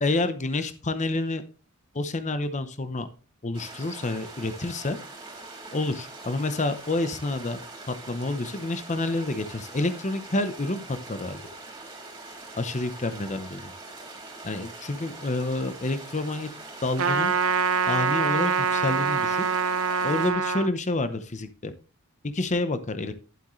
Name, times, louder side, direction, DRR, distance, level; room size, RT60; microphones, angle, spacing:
voice 1, 0.0-1.4 1.9-3.1 3.4-5.0 5.7-7.6 7.9-11.4 12.5-13.7 14.4-16.5 16.8-17.3 17.9-19.4 20.0-21.7 22.2-23.1, left 2 dB, 35° left, 11 dB, 0.8 m, -28 dB
sound 1, 3.5-20.3, right 2 dB, 20° right, 3.8 m, -43 dB
Trumpet, 17.0-20.7, right 5 dB, 75° right, 0.7 m, -24 dB
11.0 x 7.9 x 3.1 m, 0.35 s
head